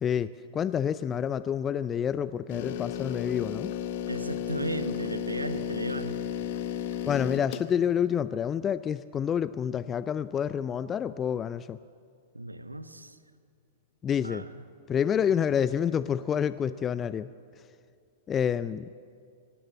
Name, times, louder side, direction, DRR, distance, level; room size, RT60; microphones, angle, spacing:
voice 1, 0.0-3.7 7.1-11.8 14.0-14.4 14.9-17.3 18.3-18.9, left 8 dB, 20° left, 15 dB, 0.4 m, -28 dB
sound 1, 2.5-7.7, left 9 dB, 50° left, 1.1 m, -33 dB
voice 2, 4.1-6.3 12.3-13.2 14.2-14.5, right 2 dB, 85° right, 11 dB, 1.2 m, -35 dB
25.0 x 17.5 x 7.4 m, 2.3 s
figure-of-eight pair, 105°, 0 cm